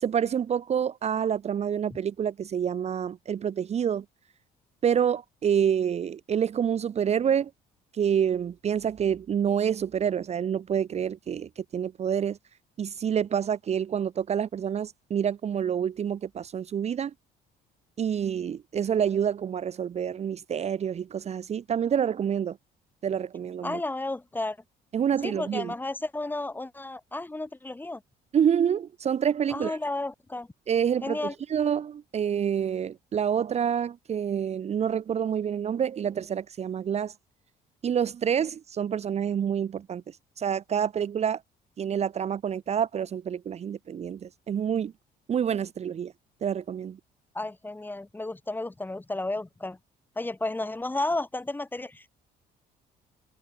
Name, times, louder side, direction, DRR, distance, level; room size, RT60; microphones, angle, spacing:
voice 1, 0.0-4.0 4.8-7.5 7.9-12.4 12.8-17.1 18.0-22.6 23.0-23.8 24.9-25.7 28.3-29.8 30.7-37.1 37.8-40.0 40.4-41.4 41.8-44.9 45.3-46.1 46.4-47.0, right 8 dB, 40° right, 0.9 m, -27 dB
voice 2, 23.6-24.6 25.2-28.0 29.5-30.5 31.0-31.3 47.3-49.8 50.2-52.1, left 2 dB, 10° left, 1.8 m, -32 dB
cardioid pair, 110°, 17 cm